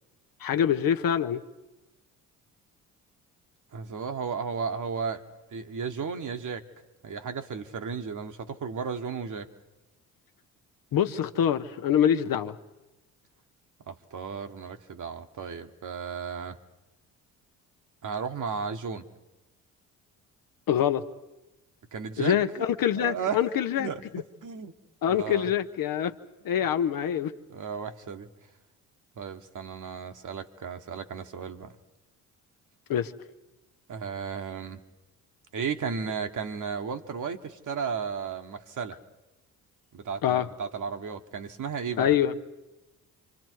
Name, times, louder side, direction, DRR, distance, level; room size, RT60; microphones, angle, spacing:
voice 1, 0.4-1.4 10.9-12.5 20.7-21.0 22.2-23.9 25.0-26.1 26.4-27.3 32.9-33.1 40.2-40.5 42.0-42.3, left 9 dB, 55° left, 1.0 m, -25 dB
voice 2, 3.7-5.2 5.5-6.6 7.0-9.5 13.9-16.6 18.0-19.0 21.9-22.4 23.0-23.4 23.8-24.0 24.4-24.7 25.1-25.5 27.5-28.3 29.2-31.7 33.9-34.8 35.5-39.0 39.9-42.1, right 6 dB, 45° right, 1.5 m, -34 dB
27.5 x 25.0 x 4.7 m
hypercardioid pair, 55°, 42 cm